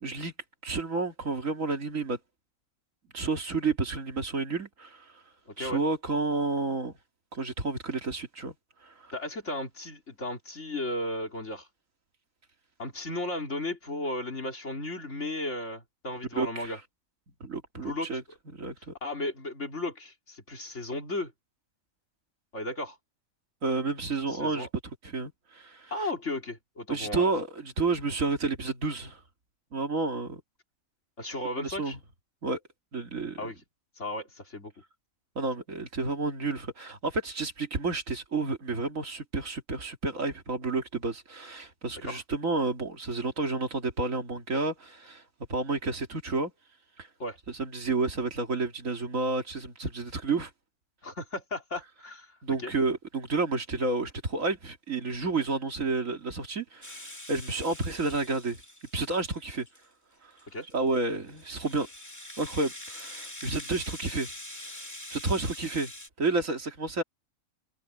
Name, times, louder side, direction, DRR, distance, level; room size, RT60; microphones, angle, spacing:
voice 1, 0.0-0.3 0.6-2.2 3.1-5.2 5.6-6.9 7.3-8.5 8.8-9.1 16.4-16.8 17.4-18.2 18.5-18.9 23.6-24.7 25.0-25.9 26.9-29.2 29.7-30.4 31.6-32.0 32.4-32.6 32.9-33.4 35.4-45.2 45.5-46.5 47.0-47.1 47.5-50.5 52.4-58.6 58.9-59.7 60.2-60.3 60.7-61.9 62.4-64.3 65.1-65.9 66.2-67.0, right 3 dB, 70° right, 2.8 m, -30 dB
voice 2, 5.5-5.8 9.1-11.7 12.8-16.8 17.7-18.2 19.0-21.3 22.5-23.0 24.3-24.7 25.9-27.3 31.2-32.0 33.4-33.6 34.0-34.7 42.0-42.2 47.2-47.4 51.0-52.4 52.6-52.7 60.5-60.7, left 1 dB, 60° left, 3.9 m, -35 dB
Rattle (instrument), 56.8-59.9 60.4-66.1, left 1 dB, 10° left, 2.3 m, -44 dB
omnidirectional pair, 1.4 m